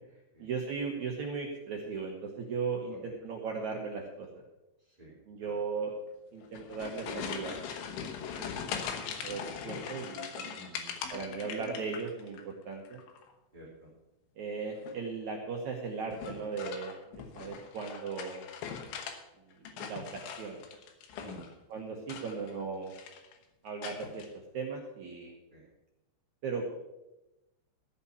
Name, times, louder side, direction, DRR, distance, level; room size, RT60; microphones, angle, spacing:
voice 1, 0.4-4.3 5.3-5.9 6.3-7.6 8.0-8.5 9.2-10.5 11.1-13.0 14.4-16.9 17.3-18.4 19.8-20.6 21.7-22.9 23.6-24.2 24.5-25.3 26.4-26.7, right 5 dB, 80° right, 0 dB, 1.6 m, -37 dB
voice 2, 4.8-5.1 5.4-5.6 8.3-8.5 10.5-10.9 13.5-13.9 21.2-21.5 22.1-22.2 25.5-25.7, right 1 dB, 25° right, -5 dB, 1.0 m, -51 dB
sound 1, 6.4-12.4 12.7-13.3 14.7-15.1 16.1-19.2 19.5-21.5 22.0-22.6 22.9-23.3 23.8-24.3, left 7 dB, 80° left, 3.7 m, -41 dB
14.5 x 5.6 x 8.2 m, 0.96 s
omnidirectional pair, 5.5 m